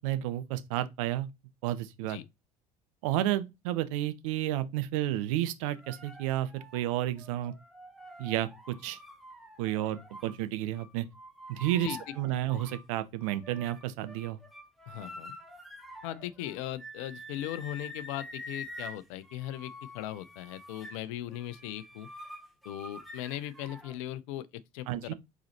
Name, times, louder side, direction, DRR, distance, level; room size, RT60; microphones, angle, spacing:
voice 1, 0.0-1.3 1.6-2.2 3.0-7.5 8.2-8.5 8.8-9.0 9.6-11.1 11.5-14.4 24.9-25.1, right 13 dB, 60° right, 0.6 m, -31 dB
sound 1, 5.7-10.4 10.7-12.9 13.2-24.0, left 1 dB, ahead, 1.2 m, -47 dB
voice 2, 14.9-15.3 16.0-22.1 22.6-24.5 24.7-25.1, left 13 dB, 60° left, 0.5 m, -38 dB
4.7 x 4.0 x 2.7 m
figure-of-eight pair, 60°, 19 cm